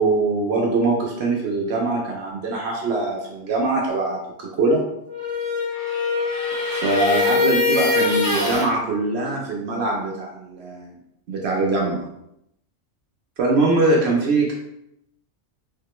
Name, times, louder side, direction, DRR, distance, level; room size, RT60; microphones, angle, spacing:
voice 1, 0.0-4.8 6.7-10.9 11.3-12.1 13.4-14.5, right 2 dB, 65° right, -2 dB, 0.8 m, -22 dB
sound 1, 5.1-8.7, left 4 dB, 20° left, 0.8 m, -22 dB
3.5 x 2.1 x 2.9 m, 0.79 s
omnidirectional pair, 1.3 m